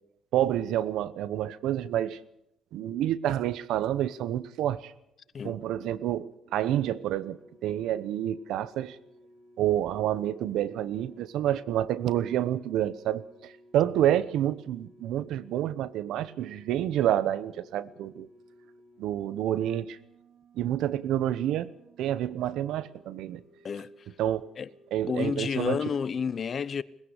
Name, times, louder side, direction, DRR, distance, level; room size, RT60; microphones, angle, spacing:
voice 1, 0.3-2.2 2.7-4.9 5.4-9.0 9.6-18.3 19.0-20.0 20.5-21.7 22.0-23.4 24.2-24.5 24.9-25.8, right 11 dB, 85° right, 0.9 m, -28 dB
sound 1, 6.4-25.6, equal, 45° right, 6.0 m, -57 dB
voice 2, 25.1-26.8, left 6 dB, 50° left, 0.8 m, -30 dB
20.0 x 15.5 x 8.2 m
cardioid pair, 90°, 0 cm